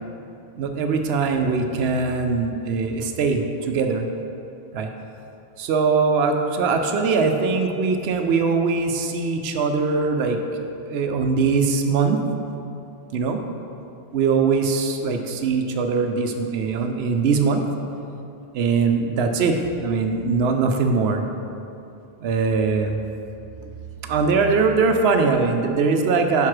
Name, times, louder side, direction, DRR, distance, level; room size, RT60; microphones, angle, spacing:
voice 1, 0.5-4.1 4.7-4.9 5.6-10.4 10.8-12.2 13.1-13.4 14.1-17.6 18.5-21.2 22.2-23.0 24.0-26.5, right 4 dB, 80° right, 5 dB, 0.9 m, -21 dB
5.6 x 4.7 x 5.9 m, 2.7 s
omnidirectional pair, 1.0 m